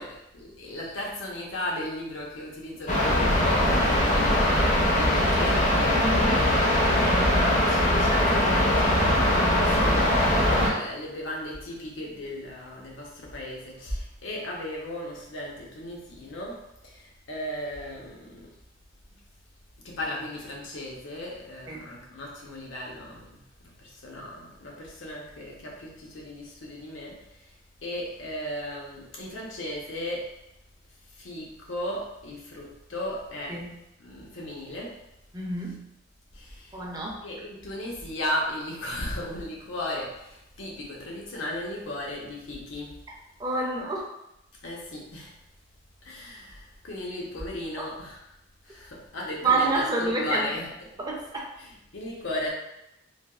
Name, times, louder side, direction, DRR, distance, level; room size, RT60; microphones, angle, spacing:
voice 1, 0.0-18.5 19.8-23.4 23.6-27.5 27.8-30.3 31.1-33.6 34.0-35.0 36.3-36.8 37.2-43.0 44.6-45.3 46.0-48.2 48.6-51.0 51.6-52.5, left 1 dB, 90° left, -2 dB, 0.7 m, -36 dB
sound 1, 2.9-10.7, left 1 dB, 40° left, 0.5 m, -21 dB
voice 2, 6.0-6.4 8.2-8.4 21.7-21.8 33.5-33.7 35.3-35.8 36.7-37.2 43.4-44.0 49.4-50.5 51.0-51.5, right 3 dB, 20° right, -1 dB, 0.4 m, -28 dB
3.2 x 2.3 x 2.3 m, 0.86 s
head